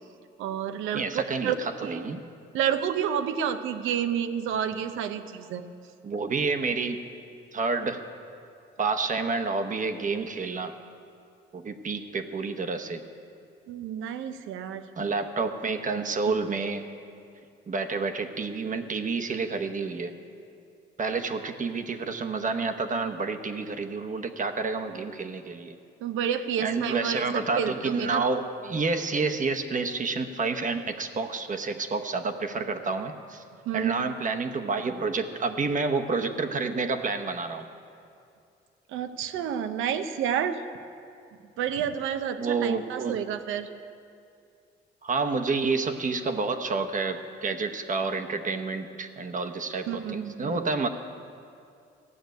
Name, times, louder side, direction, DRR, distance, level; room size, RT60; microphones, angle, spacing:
voice 1, 0.4-1.6 1.8-2.0 2.5-5.6 13.7-14.9 26.0-27.3 27.5-28.2 33.7-34.0 38.9-40.6 41.6-43.7 49.9-50.6, right 8 dB, 90° right, 10 dB, 0.7 m, -30 dB
voice 2, 0.9-2.2 6.0-7.0 7.5-8.0 8.8-10.7 11.5-13.0 15.0-16.9 17.7-20.1 21.0-25.7 26.6-33.4 33.7-37.6 42.4-43.1 45.0-50.9, right 4 dB, 40° right, 6 dB, 1.0 m, -29 dB
15.0 x 6.4 x 9.2 m, 2.4 s
cardioid pair, 90°, 20 cm